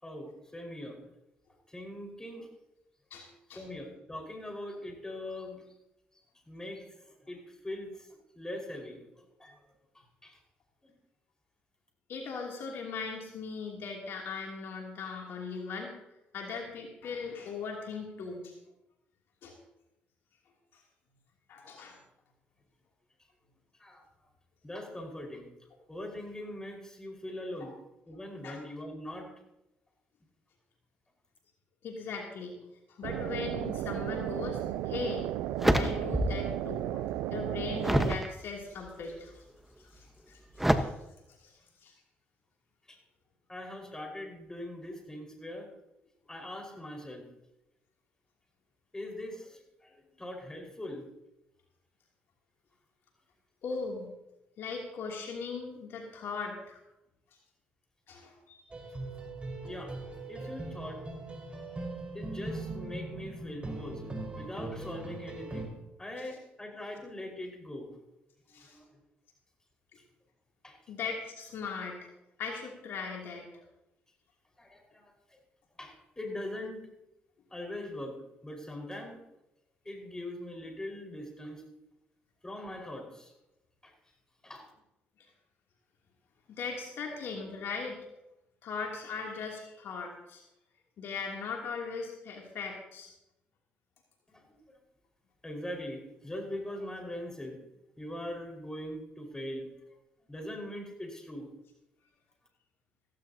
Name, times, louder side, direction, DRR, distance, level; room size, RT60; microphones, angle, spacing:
voice 1, 0.0-1.0 1.7-2.5 3.5-5.6 6.5-8.1 8.3-9.6 9.9-10.4 10.8-10.9 23.8-24.0 24.6-25.5 25.9-27.7 28.1-29.3 42.9-43.0 43.5-45.7 46.3-47.3 48.9-51.0 59.7-59.9 60.3-61.0 62.1-64.0 64.3-65.7 66.0-67.9 68.5-69.0 70.6-70.8 74.6-75.4 75.8-76.8 77.5-78.1 78.4-79.2 79.8-81.6 82.4-83.3 83.8-83.9 84.4-84.7 94.3-94.8 95.4-97.6 98.0-100.0 100.3-101.5, left 1 dB, 15° left, 2 dB, 4.9 m, -41 dB
voice 2, 3.1-3.6 12.1-15.9 16.3-18.5 19.4-19.5 21.5-22.0 27.6-27.7 28.4-28.6 31.8-32.6 32.9-35.3 35.7-39.3 39.9-40.9 41.4-41.5 41.8-41.9 53.6-54.1 54.6-56.8 58.1-58.6 68.5-68.8 70.9-72.0 72.4-73.4 86.5-88.0 88.6-90.4 91.0-93.1, left 5 dB, 70° left, -1 dB, 2.8 m, -39 dB
sound 1, 33.0-38.2, right 14 dB, 85° right, 0.5 m, -34 dB
sound 2, 34.6-34.7 35.2-36.5 36.9-38.3 38.9-39.3 40.6-40.8, equal, 5° right, 1.2 m, -28 dB
sound 3, 58.7-65.7, right 2 dB, 25° right, 4.8 m, -40 dB
16.0 x 15.5 x 2.8 m, 0.89 s
supercardioid pair, 65°, 4 cm